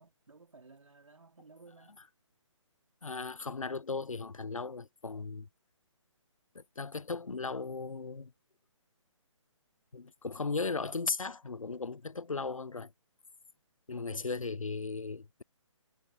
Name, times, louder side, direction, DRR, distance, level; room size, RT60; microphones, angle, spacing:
voice 1, 0.0-2.0 14.1-14.6, right 3 dB, 75° right, 3.8 m, -56 dB
voice 2, 3.0-5.5 6.5-8.3 9.9-12.9 13.9-15.4, left 4 dB, 80° left, 0.9 m, -37 dB
figure-of-eight pair, 145°, 17 cm